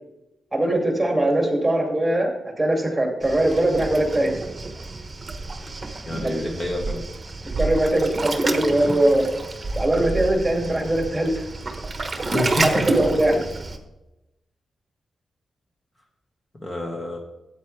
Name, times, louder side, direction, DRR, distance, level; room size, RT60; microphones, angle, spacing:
voice 1, 0.5-2.3 2.6-4.3 6.2-6.3 7.6-9.3 9.8-11.4 12.6-13.4, right 1 dB, 10° right, 1 dB, 2.3 m, -21 dB
Waves surf, 3.2-13.8, right 3 dB, 25° right, 1.2 m, -29 dB
voice 2, 6.0-7.0 12.2-13.0 16.6-17.2, left 1 dB, 20° left, 0 dB, 1.5 m, -28 dB
13.5 x 8.5 x 3.3 m, 0.96 s
wide cardioid pair, 130°, 0 cm